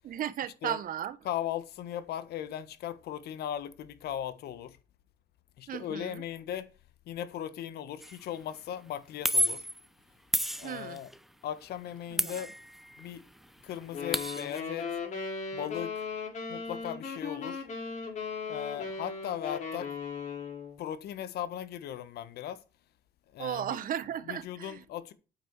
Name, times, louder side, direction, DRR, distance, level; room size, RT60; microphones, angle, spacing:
voice 1, 0.0-1.2 5.7-6.2 10.6-11.0 12.1-12.4 23.4-24.8, right 10 dB, 55° right, 1.0 m, -35 dB
voice 2, 1.2-4.8 5.6-6.7 7.1-9.7 10.6-11.1 11.4-12.5 13.0-13.2 13.6-14.9 15.5-16.0 16.5-17.7 18.5-19.9 20.8-22.6 23.3-23.8 24.3-25.1, left 10 dB, 70° left, 1.4 m, -38 dB
sound 1, 8.0-8.2 9.3-9.8 10.3-11.2 12.2-13.1 13.4-13.5 13.7-14.6, equal, ahead, 0.7 m, -31 dB
sound 2, 13.9-20.8, left 5 dB, 45° left, 6.0 m, -37 dB
8.8 x 8.3 x 4.7 m
cardioid pair, 110°, 17 cm